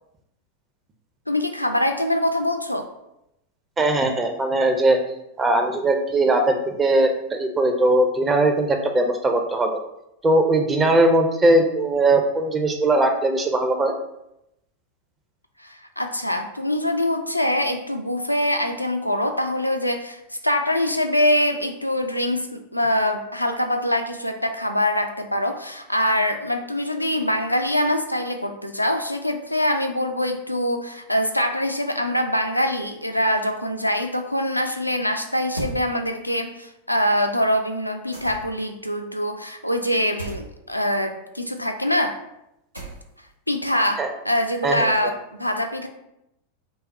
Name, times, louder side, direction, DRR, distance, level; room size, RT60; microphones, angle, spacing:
voice 1, 1.3-2.9 15.6-42.2 43.5-45.9, left 1 dB, 90° left, 5 dB, 0.4 m, -24 dB
voice 2, 3.8-5.0 5.4-9.7 10.2-13.9 44.0-44.1 44.6-44.9, right 2 dB, 20° right, 5 dB, 0.6 m, -20 dB
sound 1, 35.5-35.8 38.1-38.6 40.2-40.4 42.7-43.3, right 2 dB, 85° right, 1.0 m, -34 dB
5.3 x 2.1 x 4.1 m, 0.85 s
figure-of-eight pair, 90°, 0 cm